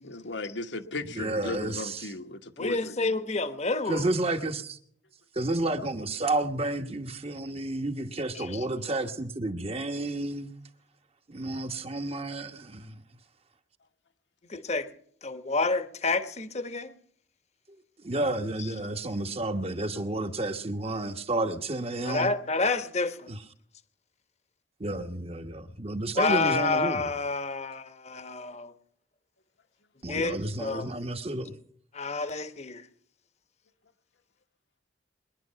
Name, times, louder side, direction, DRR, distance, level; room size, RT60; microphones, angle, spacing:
voice 1, 0.0-3.0, left 2 dB, 65° left, 1.2 m, -36 dB
voice 2, 1.2-2.0 3.9-4.8 5.3-10.5 11.3-13.0 18.0-22.3 23.3-23.4 24.8-27.1 30.0-31.5, right 2 dB, 35° right, 1.2 m, -31 dB
voice 3, 2.6-4.1 8.3-8.7 14.5-14.9 15.2-16.9 18.6-18.8 22.0-23.3 26.1-28.7 30.1-30.9 31.9-32.8, left 3 dB, 35° left, 1.1 m, -29 dB
21.5 x 11.0 x 5.7 m
head